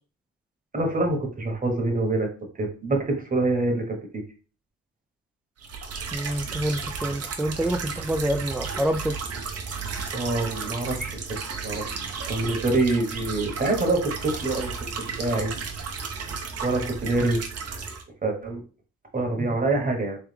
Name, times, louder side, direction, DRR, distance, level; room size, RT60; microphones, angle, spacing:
voice 1, 0.7-2.3 2.6-4.2 10.1-11.4 11.6-12.0 12.3-15.5 16.6-17.4 18.2-18.6 19.1-20.2, right 2 dB, 30° right, 1.2 m, -26 dB
sound 1, 5.6-18.0, right 5 dB, 55° right, 0.9 m, -33 dB
voice 2, 6.1-9.2 19.4-19.5, equal, 5° right, 0.3 m, -27 dB
3.4 x 3.3 x 3.4 m
cardioid pair, 90°, 30 cm